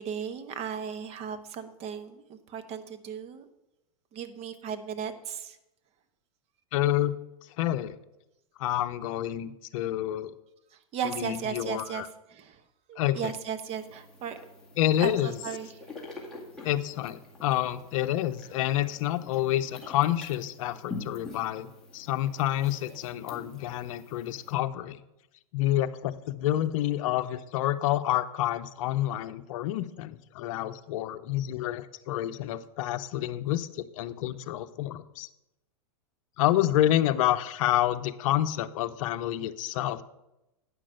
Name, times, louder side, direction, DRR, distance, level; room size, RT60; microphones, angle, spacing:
voice 1, 0.0-3.4 4.1-5.6 10.7-12.0 12.3-12.6 12.9-14.4 15.0-15.8, right 7 dB, 35° right, 9 dB, 1.0 m, -36 dB
voice 2, 6.7-7.1 7.6-8.0 8.6-10.3 11.1-12.1 13.0-13.3 14.8-15.4 16.6-25.0 25.5-35.3 36.4-40.0, left 13 dB, 60° left, 10 dB, 0.7 m, -28 dB
sound 1, 13.7-24.5, left 3 dB, 5° left, 2.2 m, -46 dB
9.4 x 6.0 x 6.4 m, 0.92 s
hypercardioid pair, 130°, 19 cm